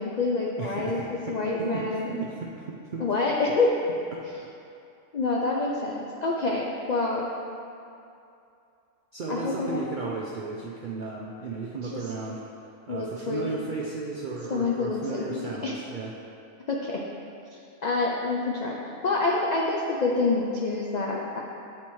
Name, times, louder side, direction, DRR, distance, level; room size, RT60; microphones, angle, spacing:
voice 1, 0.0-2.2 3.0-3.8 5.1-7.3 9.3-9.8 11.8-12.0 12.9-13.6 14.5-15.7 16.7-17.0 17.8-18.8 19.0-21.4, left 3 dB, 75° left, -2 dB, 0.4 m, -27 dB
voice 2, 0.6-3.0 4.1-4.2 9.1-12.4 12.9-16.2, right 4 dB, 70° right, -3 dB, 0.4 m, -35 dB
8.5 x 4.3 x 3.0 m, 2.6 s
omnidirectional pair, 1.4 m